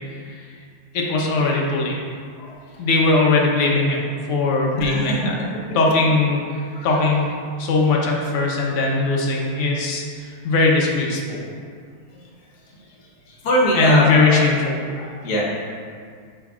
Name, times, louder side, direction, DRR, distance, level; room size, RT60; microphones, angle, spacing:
voice 1, 0.9-2.0 2.8-5.3 5.7-6.4 6.8-7.3 7.6-11.4 13.7-14.8, left 3 dB, 85° left, -2 dB, 1.8 m, -19 dB
voice 2, 4.7-5.1 6.7-6.9 13.4-14.4 15.0-15.4, equal, 55° left, -4 dB, 1.5 m, -21 dB
8.4 x 5.0 x 2.4 m, 2.1 s
omnidirectional pair, 2.4 m